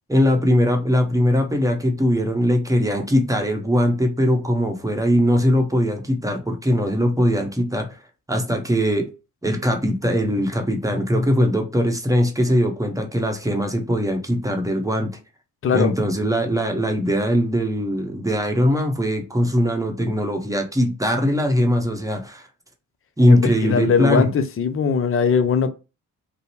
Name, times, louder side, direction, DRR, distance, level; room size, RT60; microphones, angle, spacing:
voice 1, 0.1-7.9 8.3-9.1 9.4-15.1 15.7-22.4 23.2-24.3, equal, 10° right, 0.8 m, -20 dB
voice 2, 15.6-15.9 23.3-25.7, left 6 dB, 35° left, 0.5 m, -20 dB
2.6 x 2.0 x 3.1 m
hypercardioid pair, 50°, 41 cm